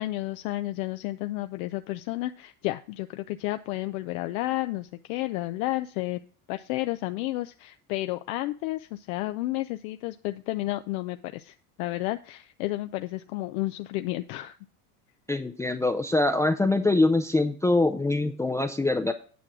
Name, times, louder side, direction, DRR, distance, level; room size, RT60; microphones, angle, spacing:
voice 1, 0.0-6.2 6.5-14.6, left 17 dB, 75° left, 9 dB, 0.6 m, -31 dB
voice 2, 15.3-19.1, left 2 dB, 5° left, 8 dB, 0.4 m, -24 dB
9.4 x 5.9 x 4.8 m, 0.42 s
supercardioid pair, 100°, 43 cm